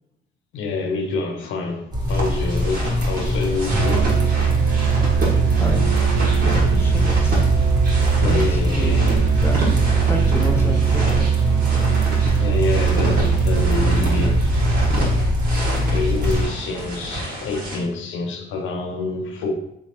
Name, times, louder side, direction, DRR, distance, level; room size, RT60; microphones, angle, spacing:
voice 1, 0.5-5.1 8.2-9.3 12.4-14.4 15.9-19.5, left 3 dB, 80° left, 0.6 m, -27 dB
sound 1, 1.9-16.4, left 1 dB, 20° right, 1.0 m, -23 dB
sound 2, 2.1-17.8, right 1 dB, 50° right, 1.5 m, -30 dB
Musical instrument, 3.7-15.4, right 9 dB, 65° right, 0.6 m, -21 dB
voice 2, 5.1-7.5 8.2-11.5, equal, 10° left, 0.7 m, -31 dB
3.6 x 3.1 x 2.8 m
cardioid pair, 90°, 20 cm